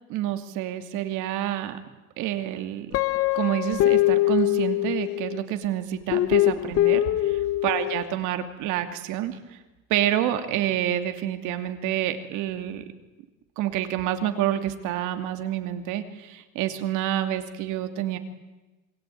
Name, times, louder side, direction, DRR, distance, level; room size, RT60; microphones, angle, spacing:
voice 1, 0.1-1.8 2.2-2.9 3.3-9.4 9.9-12.8 13.6-18.2, right 12 dB, 55° right, 7 dB, 2.6 m, -28 dB
Guitar, 2.9-5.4 6.1-8.0, left 16 dB, 40° left, 1.0 m, -23 dB
27.0 x 22.0 x 9.3 m, 1.1 s
cardioid pair, 160°, 35 cm